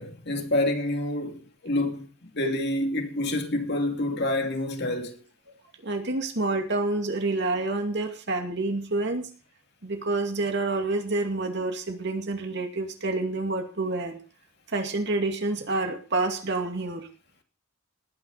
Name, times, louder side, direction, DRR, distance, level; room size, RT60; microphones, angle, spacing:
voice 1, 0.0-5.2, left 1 dB, 50° left, 2.7 m, -28 dB
voice 2, 5.8-9.3 9.8-14.2 14.7-17.1, right 2 dB, 55° right, 2.4 m, -28 dB
19.0 x 9.8 x 4.1 m
head